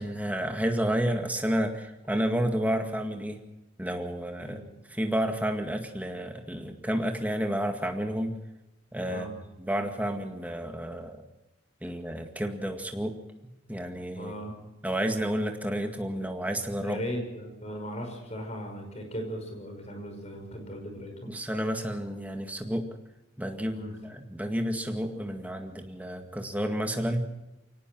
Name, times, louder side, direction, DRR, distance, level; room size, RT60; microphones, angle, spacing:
voice 1, 0.0-3.4 3.8-4.6 4.9-8.3 8.9-9.3 9.6-11.2 11.8-13.2 13.7-14.3 14.8-17.0 21.3-22.9 23.4-27.3, equal, 10° right, 4 dB, 2.0 m, -30 dB
voice 2, 14.2-14.6 16.8-21.4 23.7-23.9, equal, 35° left, 4 dB, 5.6 m, -37 dB
24.0 x 18.5 x 6.2 m, 1.0 s
head